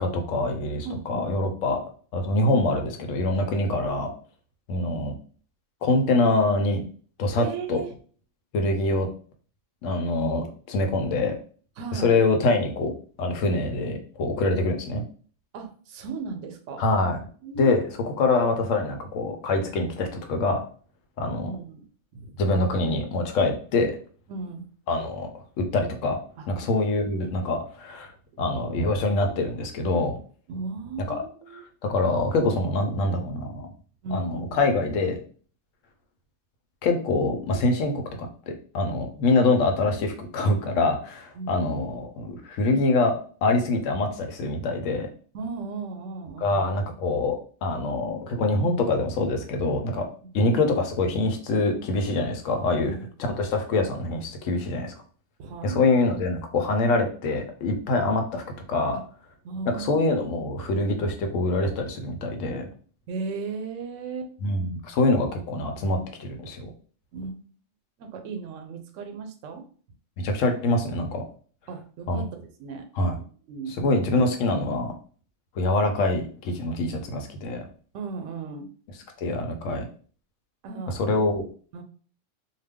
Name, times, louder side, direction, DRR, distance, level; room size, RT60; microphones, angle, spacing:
voice 1, 0.0-1.8 2.1-4.1 4.7-5.1 5.8-6.8 7.2-7.8 8.5-9.1 9.8-11.4 11.9-12.9 13.2-15.0 16.8-17.2 17.6-20.6 21.2-21.5 22.4-24.0 24.9-25.3 25.6-26.2 26.5-28.1 28.4-30.2 31.1-31.2 31.8-33.7 34.1-35.2 36.8-38.0 38.5-45.1 46.4-50.0 50.3-52.9 53.2-54.9 55.6-59.0 59.7-62.7 64.4-66.7 70.2-71.2 72.1-72.2 73.0-73.1 73.8-74.9 75.6-77.7 79.2-79.8 80.9-81.5, left 2 dB, 85° left, 4 dB, 1.0 m, -25 dB
voice 2, 0.8-1.4 7.4-8.0 11.8-12.2 15.5-16.8 17.4-17.9 21.4-21.8 22.1-22.5 24.3-24.7 26.4-26.5 28.3-28.6 30.5-31.6 34.0-34.6 41.3-41.8 45.3-46.7 50.2-50.6 52.8-53.0 55.4-55.8 58.9-59.0 59.4-60.2 60.6-60.7 63.1-64.3 67.1-67.4 68.0-69.7 71.7-72.9 73.5-73.8 77.9-78.7 80.6-81.0 81.7-81.8, right 4 dB, 80° right, 6 dB, 0.9 m, -36 dB
2.4 x 2.2 x 3.4 m, 0.43 s
omnidirectional pair, 1.3 m